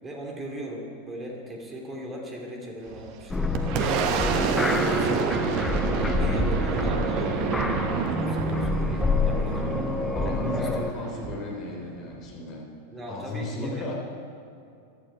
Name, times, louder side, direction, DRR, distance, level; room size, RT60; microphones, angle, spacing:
voice 1, 0.0-3.6 4.1-5.6 6.0-9.6 10.2-10.7 12.9-13.9, right 1 dB, 20° right, 0 dB, 2.7 m, -38 dB
Boom, 2.9-12.3, right 6 dB, 40° right, 1.0 m, -28 dB
sound 1, 3.3-10.9, left 4 dB, 10° left, 0.5 m, -28 dB
voice 2, 10.1-12.6 13.1-13.9, left 2 dB, 35° left, -1 dB, 3.3 m, -34 dB
15.5 x 12.0 x 4.6 m, 2.5 s
figure-of-eight pair, 90°, 0 cm